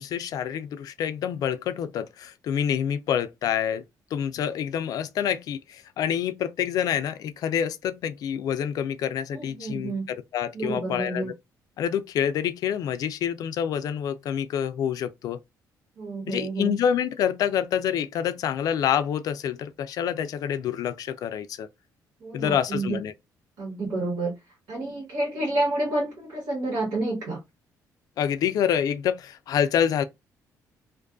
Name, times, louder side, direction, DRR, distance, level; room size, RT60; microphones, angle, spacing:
voice 1, 0.0-3.8 4.1-11.3 11.8-15.4 16.3-21.7 22.3-23.1 28.2-30.0, left 9 dB, 65° left, 0.3 m, -27 dB
voice 2, 9.3-10.1 10.5-11.3 16.0-16.7 22.2-23.0 23.6-24.4 24.7-27.4, right 2 dB, 70° right, 1.3 m, -29 dB
2.5 x 2.3 x 2.4 m
cardioid pair, 125°, 7 cm